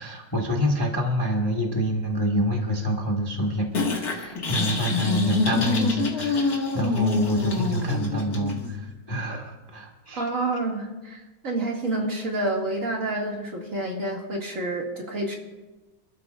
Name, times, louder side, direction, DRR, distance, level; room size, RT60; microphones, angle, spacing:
voice 1, 0.0-10.2, equal, 15° left, 1 dB, 1.3 m, -27 dB
sound 1, 3.8-8.7, left 3 dB, 50° left, 2.3 m, -25 dB
voice 2, 10.2-15.4, right 2 dB, 40° right, -1 dB, 2.5 m, -28 dB
28.5 x 12.5 x 2.5 m, 1.1 s
omnidirectional pair, 2.1 m